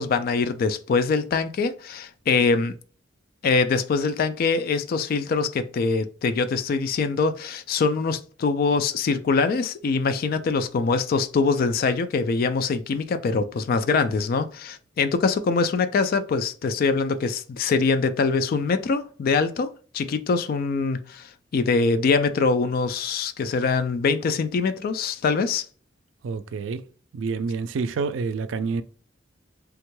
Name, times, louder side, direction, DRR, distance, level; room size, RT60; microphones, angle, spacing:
voice 1, 0.0-2.8 3.4-19.7 19.9-25.6, left 4 dB, 50° left, 0.3 m, -23 dB
voice 2, 26.2-26.9 27.1-28.8, right 4 dB, 85° right, 0.4 m, -28 dB
3.4 x 2.2 x 3.0 m
head